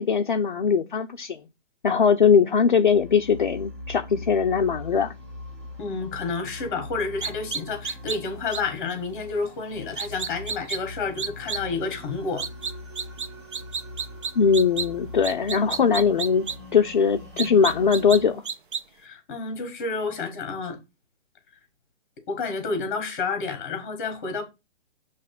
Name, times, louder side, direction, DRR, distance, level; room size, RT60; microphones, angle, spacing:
voice 1, 0.0-1.4 1.8-5.1 14.4-16.5 16.7-18.4, left 6 dB, 45° left, 0.5 m, -21 dB
sound 1, 2.8-18.3, left 2 dB, 25° right, 0.9 m, -42 dB
voice 2, 5.8-12.5 19.0-20.8 22.3-24.4, left 4 dB, 15° left, 1.1 m, -30 dB
sound 2, 7.2-8.2 8.5-8.6 10.0-10.8 11.2-11.6 12.4-13.3 13.5-14.9 15.2-16.6 17.4-18.2 18.5-18.8, right 5 dB, 45° right, 0.5 m, -30 dB
6.9 x 3.1 x 5.7 m
hypercardioid pair, 180°, 36 cm